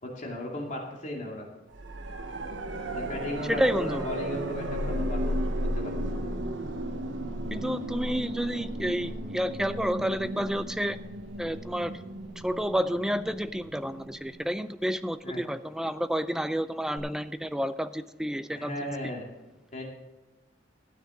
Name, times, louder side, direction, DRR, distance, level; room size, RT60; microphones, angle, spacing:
voice 1, 0.0-1.5 2.9-6.3 15.2-15.4 18.5-19.3 19.7-19.8, left 1 dB, 40° left, -1 dB, 2.5 m, -37 dB
sound 1, 1.7-14.6 17.0-17.1, right 1 dB, 85° right, 1.1 m, -34 dB
voice 2, 3.5-4.0 7.5-11.0 11.4-11.9 12.4-18.9, equal, 5° right, 12 dB, 0.4 m, -30 dB
13.0 x 9.4 x 3.8 m, 1.1 s
head